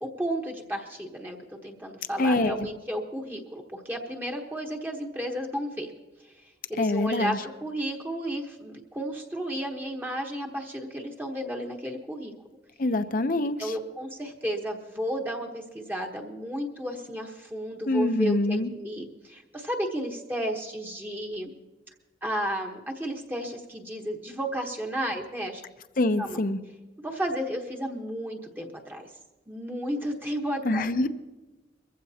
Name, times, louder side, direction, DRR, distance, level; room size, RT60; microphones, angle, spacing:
voice 1, 0.0-1.4 1.6-5.9 6.7-7.4 7.6-12.3 13.6-21.5 22.2-25.6 26.2-26.4 27.0-29.1 29.5-30.9, equal, 10° right, 1 dB, 1.1 m, -33 dB
voice 2, 2.2-2.7 6.8-7.4 12.8-13.7 17.9-18.7 26.0-26.6 30.6-31.1, left 2 dB, 50° left, 10 dB, 0.7 m, -25 dB
22.5 x 15.0 x 2.8 m, 1.1 s
head